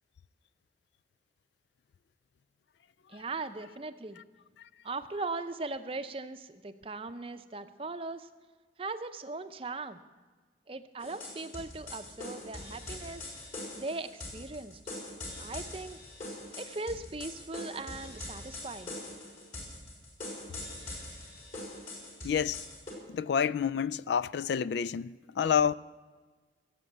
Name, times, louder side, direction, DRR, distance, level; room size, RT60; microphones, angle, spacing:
voice 1, 3.1-4.2 4.8-8.3 8.8-10.0 10.7-14.8 15.4-16.0 16.6-19.0, right 3 dB, 30° right, 0.6 m, -39 dB
sound 1, 11.0-22.9, left 1 dB, 45° left, 4.1 m, -43 dB
voice 2, 22.2-22.6 23.1-25.7, left 7 dB, 70° left, 0.3 m, -28 dB
16.0 x 7.6 x 8.1 m
head